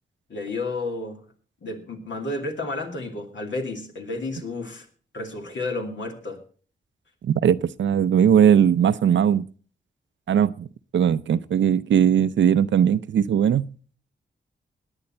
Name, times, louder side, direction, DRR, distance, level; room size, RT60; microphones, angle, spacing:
voice 1, 0.3-1.2 1.6-4.9 5.1-6.4, left 2 dB, 75° left, 3 dB, 2.5 m, -31 dB
voice 2, 7.2-9.5 10.3-10.7 10.9-13.7, right 8 dB, 75° right, 16 dB, 0.6 m, -19 dB
17.5 x 9.8 x 4.4 m, 0.42 s
cardioid pair, 65°, 19 cm